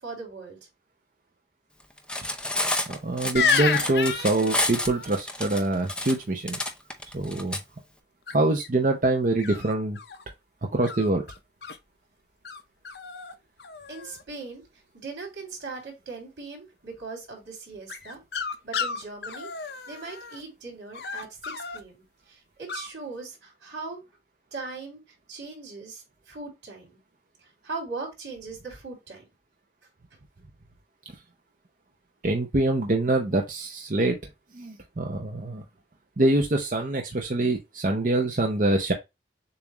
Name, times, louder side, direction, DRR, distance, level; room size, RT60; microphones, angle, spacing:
voice 1, 0.0-0.6 13.9-14.6 14.9-18.2 18.6-19.5 19.9-24.0 24.5-25.0 25.3-27.0 27.6-29.2, right 3 dB, 90° right, 3.1 m, -39 dB
Cutlery silverware, 2.0-7.6, left 1 dB, 5° left, 0.5 m, -29 dB
voice 2, 2.9-6.6 7.1-7.6 8.3-10.0 10.7-11.2 32.2-34.2 34.5-35.6 36.2-38.9, right 2 dB, 45° right, 0.7 m, -25 dB
sound 1, 3.4-5.1 8.3-8.7 9.4-10.2 10.8-11.8 12.5-12.6 12.9-13.3 13.6-14.2 17.9-20.4 20.9-21.8 22.7-22.9, left 6 dB, 65° left, 0.7 m, -31 dB
6.9 x 2.6 x 3.0 m
head